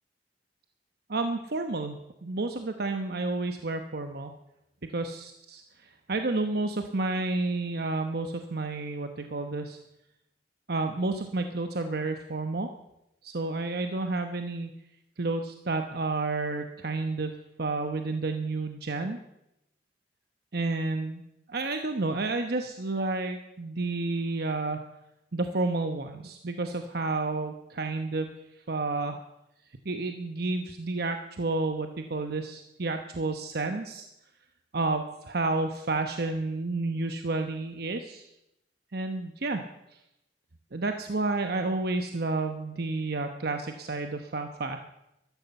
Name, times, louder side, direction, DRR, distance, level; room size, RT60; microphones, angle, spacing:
voice 1, 1.1-2.0 2.2-4.3 4.9-9.8 10.7-12.7 13.2-14.7 15.2-19.2 20.5-21.2 21.5-24.8 25.3-28.3 28.7-29.2 29.8-34.1 34.7-38.3 38.9-39.6 40.7-44.8, right 3 dB, 60° right, 6 dB, 1.0 m, -30 dB
13.5 x 13.0 x 7.0 m, 0.87 s
head